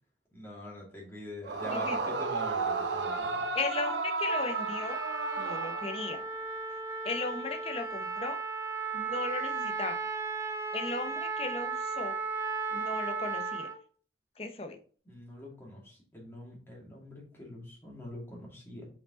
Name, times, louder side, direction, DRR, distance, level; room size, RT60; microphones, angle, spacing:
voice 1, 0.3-3.5 15.1-18.9, equal, 15° left, -3 dB, 2.3 m, -44 dB
Yell / Screaming, 1.4-6.4, right 3 dB, 85° right, 0.8 m, -33 dB
voice 2, 1.7-2.1 3.5-5.0 5.4-6.2 7.0-8.4 8.9-10.0 10.7-12.2 12.7-13.7 14.4-14.8, left 3 dB, 35° left, 6 dB, 0.8 m, -36 dB
Trumpet, 4.3-13.8, right 4 dB, 15° right, 0.6 m, -35 dB
5.4 x 4.7 x 4.0 m, 0.43 s
head